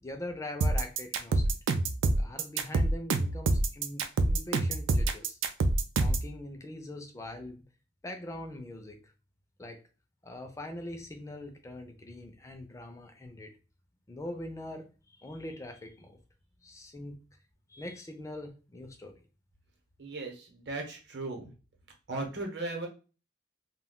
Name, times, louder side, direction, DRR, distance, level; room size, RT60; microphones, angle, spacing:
voice 1, 0.0-1.6 2.2-5.4 6.0-7.6 8.0-9.1 9.6-9.8 10.2-13.6 14.1-16.2 16.6-17.2 17.7-19.1, left 1 dB, 15° left, 5 dB, 0.4 m, -42 dB
sound 1, 0.6-6.3, right 2 dB, 85° right, 0.4 m, -26 dB
voice 2, 20.0-21.5 22.1-22.9, right 2 dB, 60° right, 1 dB, 0.8 m, -37 dB
2.3 x 2.2 x 3.6 m, 0.34 s
head